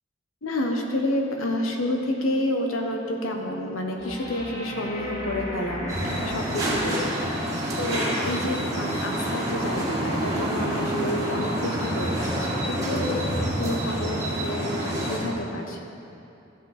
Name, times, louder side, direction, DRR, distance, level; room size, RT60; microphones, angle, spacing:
voice 1, 0.4-7.4 7.8-13.2 13.6-15.8, left 1 dB, 85° left, 2 dB, 1.2 m, -29 dB
sound 1, 4.0-7.3 10.0-10.1, equal, 30° left, 2.5 m, -36 dB
sound 2, 5.9-15.2, right 1 dB, 15° right, 2.0 m, -27 dB
13.5 x 7.4 x 4.2 m, 2.8 s
head